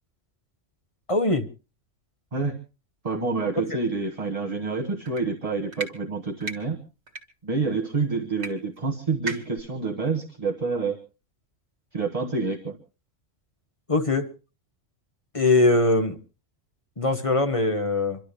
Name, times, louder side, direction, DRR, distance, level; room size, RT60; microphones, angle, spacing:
voice 1, 1.1-1.4 3.7-3.8 13.9-14.3 15.3-16.2 17.0-18.2, left 2 dB, 30° left, 6 dB, 1.2 m, -21 dB
voice 2, 3.0-6.8 7.4-11.0 11.9-12.8, right 4 dB, 30° right, 3 dB, 1.4 m, -28 dB
sound 1, 5.1-5.2 5.7-5.9 6.4-6.6 7.1-7.2 8.4-8.5 8.8-8.9 9.3-9.6, right 3 dB, 65° right, 2.0 m, -33 dB
27.0 x 12.0 x 3.4 m, 0.33 s
omnidirectional pair, 1.3 m